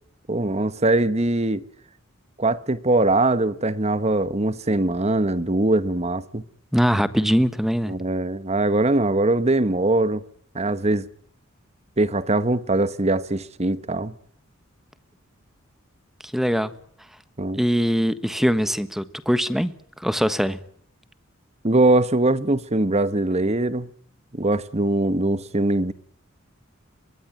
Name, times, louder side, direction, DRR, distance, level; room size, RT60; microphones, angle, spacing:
voice 1, 0.3-1.6 2.4-6.4 7.9-10.2 10.5-11.0 12.0-14.1 17.4-17.6 21.6-23.9 24.3-25.9, right 2 dB, 30° right, 1.2 m, -22 dB
voice 2, 6.7-7.9 16.3-16.7 17.6-19.7 20.0-20.6, equal, ahead, 1.4 m, -22 dB
22.5 x 20.0 x 9.2 m
head